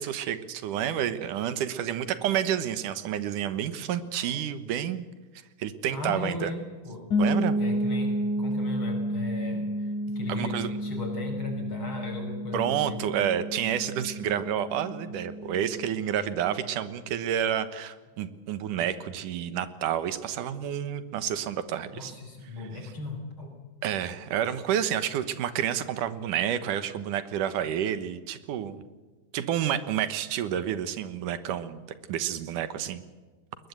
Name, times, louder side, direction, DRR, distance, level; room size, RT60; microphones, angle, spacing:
voice 1, 0.0-5.1 5.6-6.5 7.2-7.6 10.3-10.7 12.5-22.1 23.8-28.8 29.3-31.8 32.1-33.0, right 10 dB, 90° right, 12 dB, 2.8 m, -29 dB
voice 2, 5.9-7.1 7.6-13.0 21.9-23.5, left 3 dB, 40° left, 3 dB, 6.2 m, -37 dB
sound 1, 7.1-16.8, equal, 70° left, 6.7 m, -31 dB
21.5 x 21.0 x 8.2 m, 1.3 s
omnidirectional pair, 3.5 m